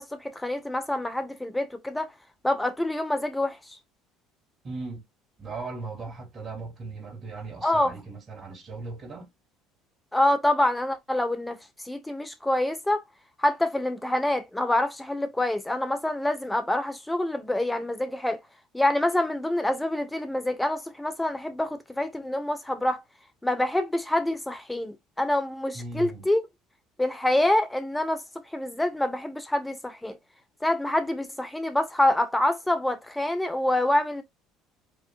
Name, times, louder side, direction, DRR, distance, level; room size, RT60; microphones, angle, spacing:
voice 1, 0.0-2.1 2.4-3.8 7.6-7.9 10.1-13.0 13.4-18.4 18.7-23.0 23.4-26.4 27.0-28.2 28.5-30.2 30.6-34.2, left 1 dB, 10° left, 1.5 m, -26 dB
voice 2, 4.6-5.0 5.4-9.3 25.7-26.2, right 3 dB, 40° right, 3.2 m, -38 dB
5.3 x 3.5 x 2.5 m
hypercardioid pair, 65°, 0 cm